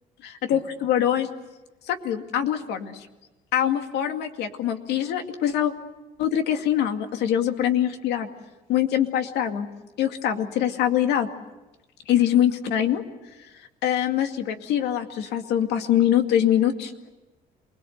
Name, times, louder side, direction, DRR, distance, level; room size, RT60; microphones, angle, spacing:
voice 1, 0.2-1.3 1.9-3.1 3.5-5.7 6.2-8.3 8.7-9.7 10.0-11.3 12.1-13.0 13.8-16.9, left 10 dB, 80° left, 6 dB, 2.3 m, -23 dB
28.0 x 21.5 x 8.1 m, 1.1 s
cardioid pair, 110°, 17 cm